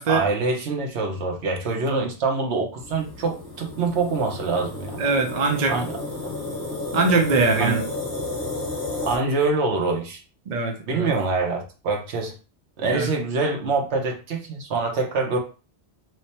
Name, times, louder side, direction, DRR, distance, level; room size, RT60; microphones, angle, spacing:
voice 1, 0.1-5.0 5.7-6.0 7.6-7.8 9.0-10.2 10.8-12.3 12.8-15.4, right 3 dB, 75° right, 2 dB, 1.1 m, -25 dB
sound 1, 2.8-9.2, left 2 dB, 20° left, 1.1 m, -32 dB
voice 2, 5.0-5.7 6.9-7.8 10.5-11.1 12.9-13.1, right 4 dB, 50° right, 3 dB, 0.6 m, -22 dB
3.2 x 2.0 x 4.1 m, 0.34 s
omnidirectional pair, 1.2 m